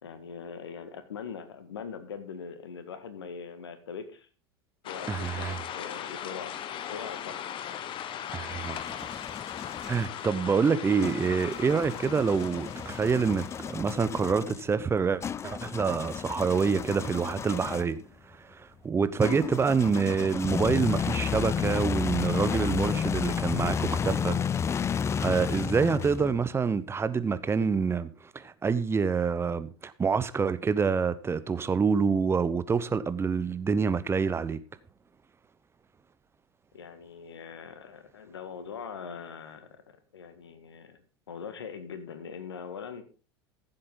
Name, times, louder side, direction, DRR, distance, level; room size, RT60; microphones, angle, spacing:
voice 1, 0.0-4.3 4.8-6.5 6.9-7.4 36.7-39.8 40.1-41.0 41.3-43.0, left 6 dB, 80° left, 1.8 m, -41 dB
sound 1, 4.8-13.8, left 9 dB, 40° left, 1.1 m, -39 dB
voice 2, 5.1-5.6 8.3-8.8 9.9-18.0 18.3-24.4 25.2-28.1 28.3-34.6, right 5 dB, 20° right, 0.9 m, -27 dB
sound 2, 8.3-10.1 11.0-18.0 19.2-26.5, left 7 dB, 20° left, 0.4 m, -32 dB
15.0 x 7.8 x 3.9 m
hypercardioid pair, 85°, 13 cm